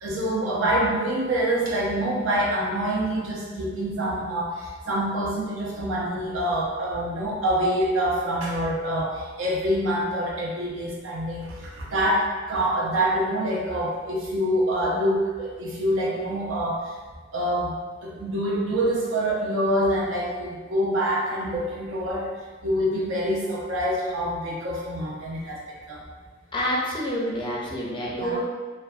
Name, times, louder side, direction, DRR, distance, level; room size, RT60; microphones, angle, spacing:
voice 1, 0.0-16.8 17.3-17.7 18.0-22.3 22.6-25.6 25.9-26.0 28.1-28.4, equal, 75° right, -4 dB, 0.6 m, -26 dB
voice 2, 26.5-28.4, equal, 25° left, -4 dB, 0.4 m, -28 dB
2.5 x 2.2 x 2.3 m, 1.4 s
head